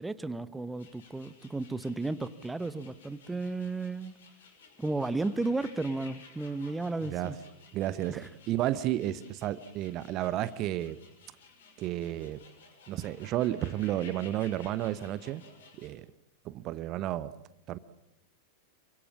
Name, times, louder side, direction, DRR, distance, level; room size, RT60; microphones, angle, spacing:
voice 1, 0.0-4.1 4.8-7.4 8.1-8.3, right 3 dB, 10° right, 14 dB, 1.0 m, -33 dB
sound 1, 0.8-15.9, left 5 dB, 60° left, 6.6 m, -56 dB
voice 2, 7.7-11.0 11.8-12.4 12.9-15.4 15.8-16.1 16.4-17.3 17.7-17.8, right 13 dB, 35° right, 16 dB, 0.9 m, -32 dB
28.5 x 24.5 x 7.4 m, 0.89 s
figure-of-eight pair, 90°, 0 cm